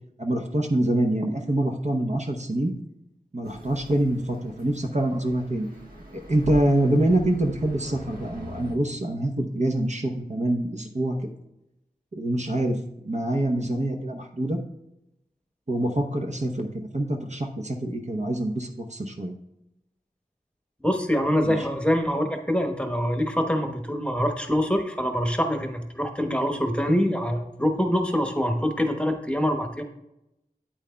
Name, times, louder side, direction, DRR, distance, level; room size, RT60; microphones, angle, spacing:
voice 1, 0.2-2.7 3.3-5.7 6.1-11.2 12.1-12.8 13.0-14.6 15.7-19.3 21.4-21.6, right 1 dB, 50° right, 3 dB, 0.9 m, -25 dB
sound 1, 3.4-8.8, equal, 65° right, 1.4 m, -41 dB
voice 2, 20.8-29.8, equal, 5° left, 4 dB, 1.1 m, -25 dB
8.9 x 8.7 x 2.2 m, 0.87 s
wide cardioid pair, 40°, 16 cm